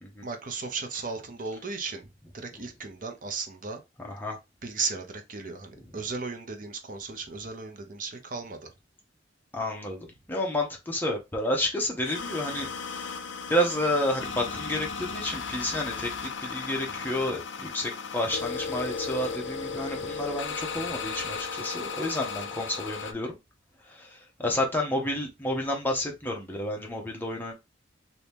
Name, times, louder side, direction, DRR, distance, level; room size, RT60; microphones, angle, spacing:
voice 1, 0.2-2.1 2.3-3.8 4.6-8.7, right 4 dB, 45° right, 0.7 m, -35 dB
voice 2, 4.0-4.4 5.8-5.9 9.5-13.2 13.5-16.1 16.4-23.4 23.8-27.5, left 1 dB, 10° left, 0.8 m, -30 dB
sound 1, 12.0-23.1, left 5 dB, 85° left, 0.5 m, -35 dB
2.9 x 2.8 x 3.4 m
head